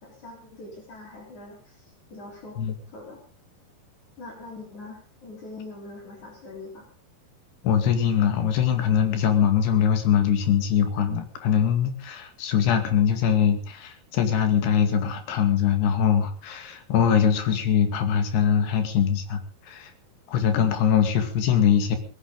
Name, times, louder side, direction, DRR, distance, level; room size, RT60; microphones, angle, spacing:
voice 1, 0.0-2.6 2.9-3.2 4.2-6.9, left 2 dB, 50° left, 0 dB, 5.1 m, -43 dB
voice 2, 7.6-19.4 19.7-19.9 20.3-22.0, left 8 dB, 80° left, 8 dB, 4.3 m, -22 dB
21.0 x 16.0 x 3.8 m, 0.37 s
omnidirectional pair, 4.6 m